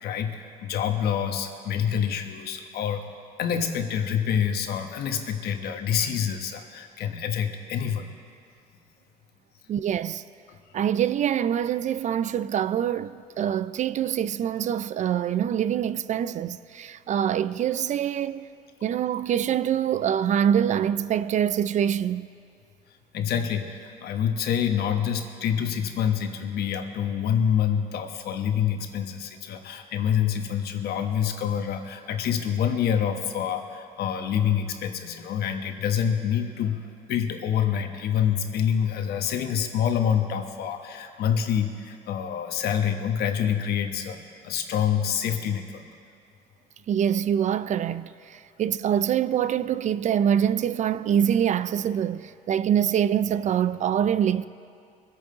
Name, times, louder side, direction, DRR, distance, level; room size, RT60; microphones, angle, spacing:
voice 1, 0.0-3.1 3.4-8.1 10.5-10.6 23.1-36.8 37.1-45.8, left 8 dB, 70° left, 1.2 m, -27 dB
voice 2, 9.7-10.2 10.7-18.5 18.8-22.3 46.9-54.5, right 9 dB, 45° right, 0.4 m, -25 dB
22.5 x 8.7 x 3.9 m
cardioid pair, 110°, 17 cm